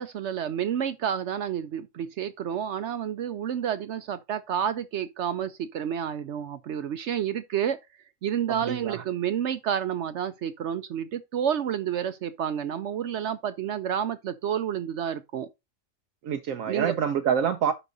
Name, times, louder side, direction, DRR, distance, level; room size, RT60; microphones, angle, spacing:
voice 1, 0.0-7.8 8.2-15.5 16.7-17.0, right 9 dB, 65° right, 0.8 m, -30 dB
voice 2, 8.5-9.0 16.2-17.7, right 8 dB, 85° right, 1.1 m, -26 dB
11.0 x 4.0 x 3.9 m
omnidirectional pair, 1.4 m